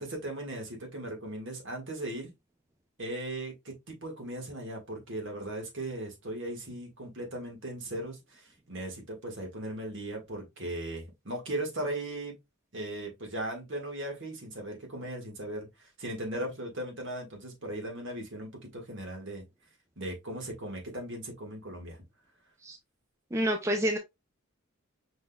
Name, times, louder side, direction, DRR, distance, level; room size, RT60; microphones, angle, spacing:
voice 1, 0.0-2.3 3.0-12.4 12.7-19.4 20.0-22.0, right 1 dB, 60° right, 1.6 m, -38 dB
voice 2, 23.3-24.0, equal, 15° right, 0.4 m, -28 dB
5.1 x 3.9 x 2.2 m
head